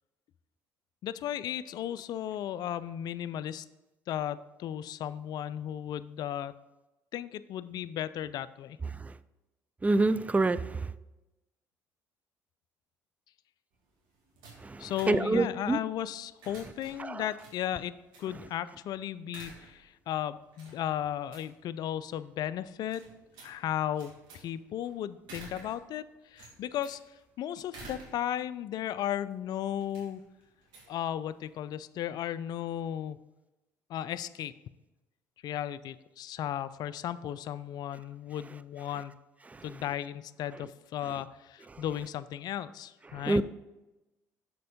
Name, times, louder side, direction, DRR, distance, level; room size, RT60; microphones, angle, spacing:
voice 1, 1.0-3.7 4.1-6.5 7.1-8.8 14.8-17.9 18.2-23.0 23.4-27.0 27.4-30.2 30.9-33.3 33.9-34.6 35.4-39.1 39.6-43.4, left 11 dB, 55° left, 15 dB, 0.3 m, -35 dB
voice 2, 9.8-10.9 14.6-15.8 17.0-17.2 43.3-43.4, right 2 dB, 20° right, 15 dB, 0.4 m, -27 dB
sound 1, 13.7-31.7, right 3 dB, 70° right, 2.2 m, -54 dB
6.7 x 4.5 x 5.0 m, 1.0 s
hypercardioid pair, 60°, 8 cm